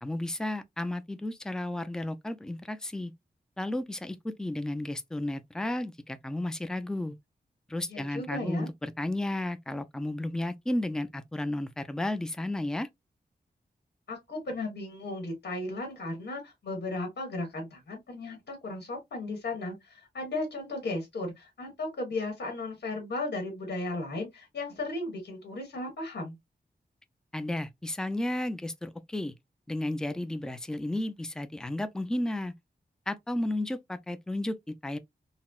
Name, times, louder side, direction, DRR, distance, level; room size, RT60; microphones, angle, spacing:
voice 1, 0.0-3.1 3.6-7.2 7.7-12.9 27.3-29.3 29.7-32.5 33.1-35.0, left 1 dB, 5° left, 0.3 m, -33 dB
voice 2, 7.9-8.7 14.1-26.4, left 2 dB, 80° left, 1.3 m, -35 dB
4.0 x 2.0 x 2.3 m
wide cardioid pair, 125°, 17 cm